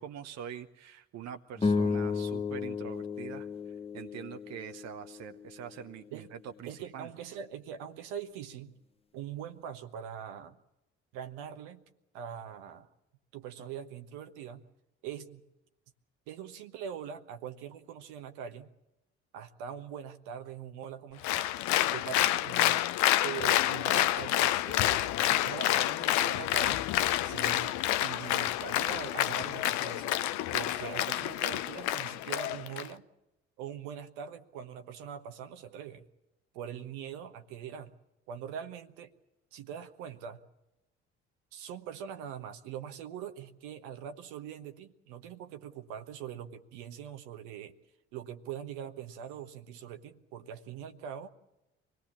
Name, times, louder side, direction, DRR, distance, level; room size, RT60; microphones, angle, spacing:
voice 1, 0.0-3.5 3.9-7.1, right 9 dB, 55° right, 8 dB, 1.0 m, -44 dB
sound 1, 1.6-6.1, left 4 dB, 20° left, 0.9 m, -33 dB
voice 2, 6.7-8.7 9.1-10.6 11.1-11.8 12.1-12.9 13.3-14.7 15.0-15.4 16.3-18.7 19.3-21.5 21.9-22.8 23.2-26.8 27.2-30.2 30.5-33.1 33.6-36.0 36.5-37.9 38.3-39.1 39.5-40.4 41.5-47.7 48.1-51.3, right 8 dB, 75° right, 7 dB, 1.3 m, -42 dB
Applause, 21.2-32.9, left 14 dB, 65° left, 0.7 m, -28 dB
25.0 x 18.5 x 7.3 m, 0.93 s
hypercardioid pair, 50°, 31 cm